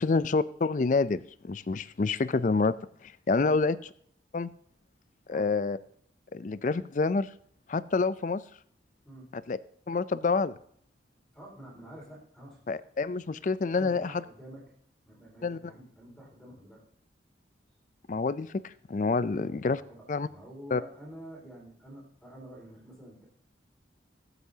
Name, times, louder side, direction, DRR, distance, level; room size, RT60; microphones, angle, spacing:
voice 1, 0.0-2.8 3.0-3.8 4.3-4.5 5.3-5.8 6.3-7.3 7.7-8.4 9.5-9.6 9.9-10.6 12.7-14.2 15.4-15.6 18.1-19.8 20.1-20.3 20.7-20.8, left 4 dB, 45° left, 17 dB, 0.4 m, -27 dB
voice 2, 11.3-12.7 13.8-14.6 15.0-16.8 19.3-19.5 19.8-23.3, right 1 dB, 5° left, -3 dB, 4.6 m, -48 dB
22.5 x 8.1 x 2.8 m, 0.64 s
head